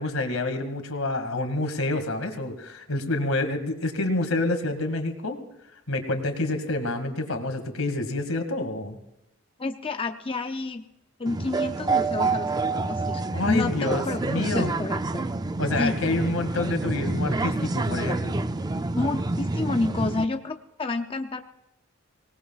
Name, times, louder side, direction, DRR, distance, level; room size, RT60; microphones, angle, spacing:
voice 1, 0.0-5.4 5.9-9.0 13.3-14.7 15.6-18.4, left 2 dB, 80° left, 6 dB, 2.1 m, -28 dB
voice 2, 9.6-10.8 11.2-15.2 15.8-16.0 18.9-21.4, left 3 dB, 25° left, 6 dB, 0.6 m, -29 dB
sound 1, 11.3-20.3, right 3 dB, 20° right, 0.5 m, -28 dB
24.5 x 18.5 x 2.4 m, 0.87 s
head